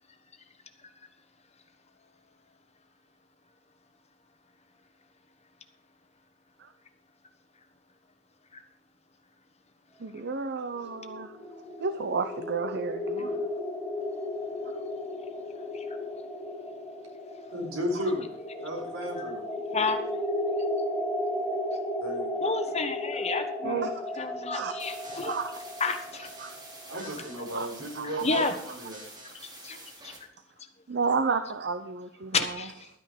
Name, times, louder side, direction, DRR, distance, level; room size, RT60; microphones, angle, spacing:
voice 1, 10.0-11.3 11.8-13.4 22.5-22.6 23.6-23.9 24.5-24.7 25.2-25.6 26.4-26.5 27.5-27.7 28.0-28.4 30.9-32.6, right 5 dB, 55° right, 9 dB, 0.8 m, -31 dB
sound 1, 10.8-27.7, left 1 dB, 5° left, 2.6 m, -35 dB
voice 2, 17.5-18.3 18.5-19.4 22.0-22.3 26.9-29.0 29.7-29.8, equal, 85° right, 1 dB, 4.3 m, -34 dB
voice 3, 22.4-23.8 24.2-25.4 25.8-26.3 28.0-28.5 29.4-29.8 30.0-30.1 32.3-32.9, left 4 dB, 35° left, 7 dB, 1.3 m, -31 dB
sound 2, 24.8-30.2, right 1 dB, 20° right, 3.4 m, -47 dB
12.5 x 9.6 x 5.2 m, 0.75 s
head